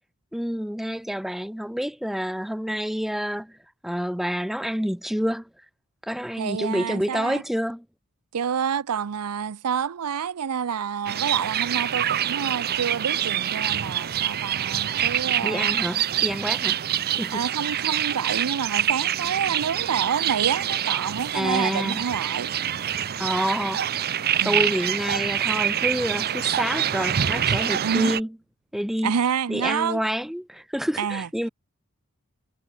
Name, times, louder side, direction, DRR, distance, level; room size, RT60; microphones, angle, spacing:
voice 1, 0.3-3.5 3.8-5.4 6.1-7.8 15.4-16.8 17.2-17.5 21.3-22.1 23.2-23.8 24.4-28.3 28.7-29.1 29.5-31.5, equal, ahead, 0.5 m, -28 dB
voice 2, 6.4-7.4 8.3-15.9 17.3-22.5 24.4-24.7 27.8-28.2 29.0-30.1 31.0-31.3, right 7 dB, 90° right, 0.5 m, -28 dB
sound 1, 11.1-28.2, right 10 dB, 45° right, 0.6 m, -26 dB
head